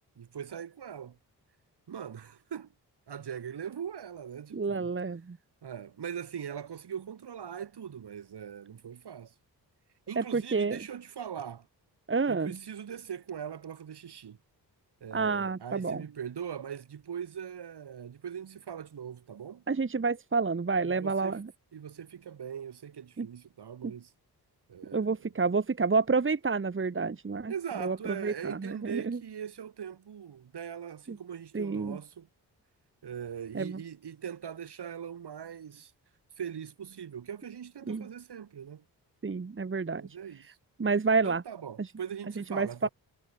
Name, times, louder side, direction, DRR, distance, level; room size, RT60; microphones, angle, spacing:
voice 1, 0.2-1.2 1.9-2.7 3.1-4.9 5.6-9.3 10.1-11.7 12.3-14.4 15.0-19.6 20.8-21.4 21.7-24.1 24.7-25.3 27.5-32.3 33.0-35.9 36.4-38.8 40.0-40.6 41.2-42.9, right 8 dB, 70° right, 7.0 m, -41 dB
voice 2, 4.5-5.4 10.2-10.8 12.1-12.6 15.1-16.0 19.7-21.5 23.2-23.3 23.8-23.9 24.9-27.5 27.8-29.2 31.1-31.2 31.5-32.0 33.5-33.8 37.9-38.1 39.2-40.0 40.8-41.4 42.4-42.9, right 4 dB, 30° right, 1.5 m, -29 dB
cardioid pair, 55°, 41 cm